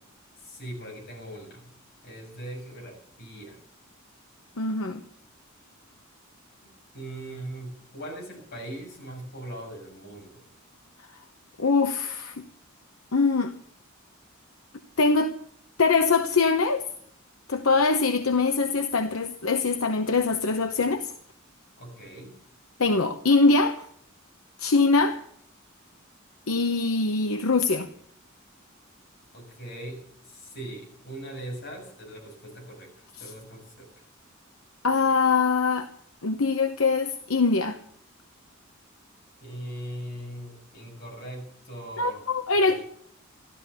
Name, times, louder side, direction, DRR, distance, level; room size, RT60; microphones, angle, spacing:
voice 1, 0.4-1.7 2.0-3.6 6.9-10.4 21.8-22.3 29.3-32.9 33.2-34.0 39.4-42.2 42.5-42.8, right 1 dB, 55° left, 7.4 m, -40 dB
voice 2, 4.6-5.0 11.6-12.4 13.1-13.5 15.0-15.4 15.8-16.9 17.5-21.1 22.8-23.9 24.6-25.2 26.5-27.9 34.8-35.9 36.2-37.8 42.0-42.8, left 4 dB, 80° left, 0.9 m, -23 dB
13.5 x 13.5 x 7.0 m
head